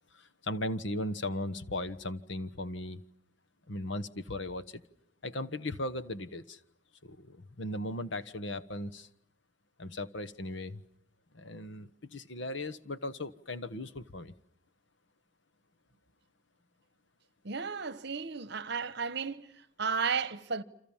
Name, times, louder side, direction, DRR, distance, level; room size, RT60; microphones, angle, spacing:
voice 1, 0.1-3.0 3.7-4.8 5.2-6.6 7.0-9.1 9.8-10.8 11.3-14.3, left 1 dB, 60° left, 1.3 m, -37 dB
voice 2, 17.4-20.6, right 5 dB, 55° right, 1.2 m, -34 dB
29.0 x 26.5 x 7.3 m
head